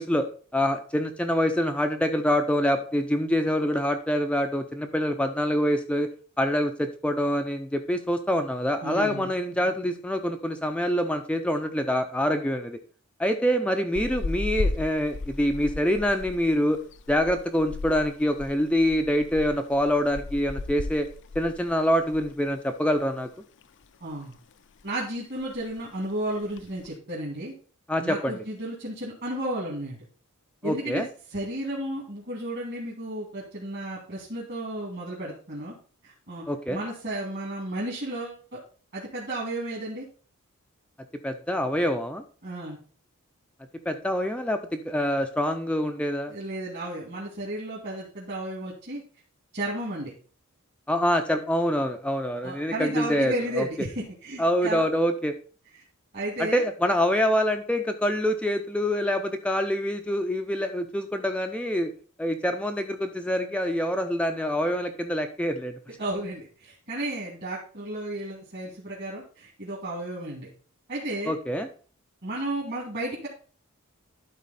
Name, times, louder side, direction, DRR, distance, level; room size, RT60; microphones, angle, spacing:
voice 1, 0.0-6.1 6.4-12.8 13.2-16.8 17.1-21.1 21.3-23.3 27.9-28.3 30.6-31.1 36.5-36.8 41.2-42.2 43.9-46.3 50.9-53.7 54.4-55.3 56.4-61.9 62.2-65.8 71.3-71.7, equal, 5° left, 6 dB, 0.5 m, -25 dB
voice 2, 8.8-9.3 24.0-24.4 24.8-27.5 28.0-30.0 30.6-31.0 31.3-35.7 36.0-38.6 38.9-40.0 42.4-42.8 46.3-49.0 49.5-50.1 52.4-54.8 56.1-56.6 66.0-70.5 70.9-71.3 72.2-73.3, right 1 dB, 50° right, -5 dB, 2.2 m, -33 dB
sound 1, 14.0-22.5 22.7-22.9 23.3-24.2 24.5-24.9 25.1-25.2 25.4-25.9 26.4-26.9, left 3 dB, 55° left, 0.5 m, -35 dB
11.5 x 4.2 x 4.1 m, 0.41 s
head